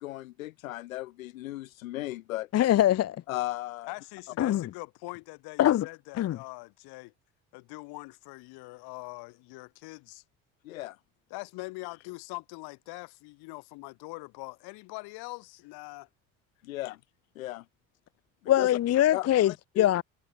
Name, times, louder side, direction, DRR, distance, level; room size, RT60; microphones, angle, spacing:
voice 1, 0.0-2.5 3.3-3.9 10.6-11.0 16.6-17.0 17.4-17.6 18.6-18.7 19.1-19.9, left 16 dB, 85° left, 1.7 m, -36 dB
voice 2, 2.5-3.2 4.4-4.6 5.6-5.9 6.2-6.4 18.5-20.0, left 12 dB, 40° left, 0.7 m, -23 dB
voice 3, 3.8-7.1 7.5-10.2 11.3-16.1, left 25 dB, 70° left, 3.5 m, -43 dB
hypercardioid pair, 65°, 40 cm